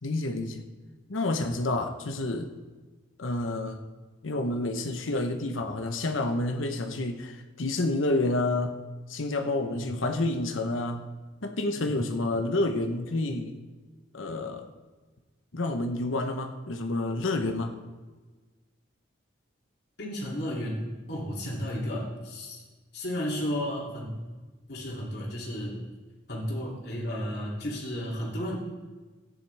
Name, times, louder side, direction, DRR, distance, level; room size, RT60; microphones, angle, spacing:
voice 1, 0.0-0.6 1.1-2.5 3.2-3.8 4.2-8.8 9.1-11.0 11.4-13.5 14.1-14.7 15.5-17.8, left 2 dB, 90° left, 6 dB, 1.0 m, -29 dB
voice 2, 20.0-20.8 21.1-22.6 22.9-24.2 24.7-25.8 26.3-28.6, equal, 55° left, -4 dB, 2.9 m, -33 dB
15.0 x 9.9 x 3.5 m, 1.3 s
head